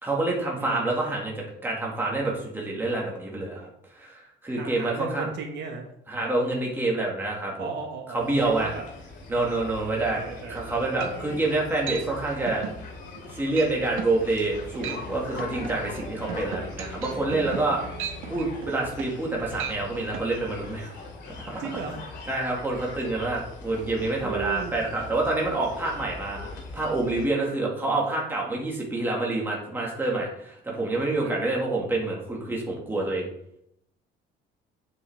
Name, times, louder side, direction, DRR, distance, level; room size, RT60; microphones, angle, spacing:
voice 1, 0.0-5.3 6.1-7.7 8.1-8.7 9.3-10.2 10.5-12.6 13.3-17.8 18.3-20.9 21.4-21.8 22.3-33.3, right 2 dB, 10° right, -3 dB, 1.9 m, -27 dB
voice 2, 0.5-1.0 4.5-5.9 7.6-8.8 9.4-11.5 21.6-22.0 24.0-24.8 31.2-31.6, right 5 dB, 60° right, 2 dB, 1.4 m, -37 dB
sound 1, 8.2-27.2, left 3 dB, 60° left, 2.4 m, -41 dB
sound 2, 10.6-10.7 11.0-11.4 11.9-12.1 12.5-12.8 13.1-13.3 13.6-13.7 14.0-14.2 14.7-15.1 15.4-19.3 19.6-19.8 20.1-20.3, right 8 dB, 90° right, 1.4 m, -36 dB
8.1 x 7.6 x 3.5 m, 0.73 s
cardioid pair, 165°, 20 cm